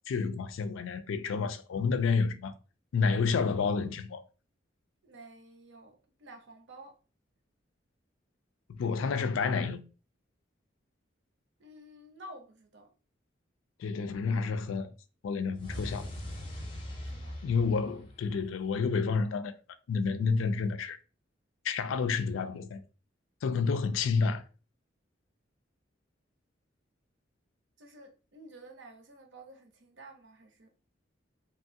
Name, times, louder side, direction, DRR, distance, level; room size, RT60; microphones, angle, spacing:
voice 1, 0.1-2.5 2.9-4.2 8.7-9.8 13.8-14.9 15.2-16.1 17.4-19.5 19.9-21.0 21.6-22.8 23.4-24.4, left 5 dB, 90° left, 0.4 m, -29 dB
voice 2, 5.0-7.0 11.6-12.9 17.0-17.4 27.8-30.7, right 1 dB, 70° right, 0.6 m, -51 dB
sound 1, 15.6-18.7, left 1 dB, 25° left, 0.5 m, -41 dB
2.9 x 2.3 x 2.7 m
head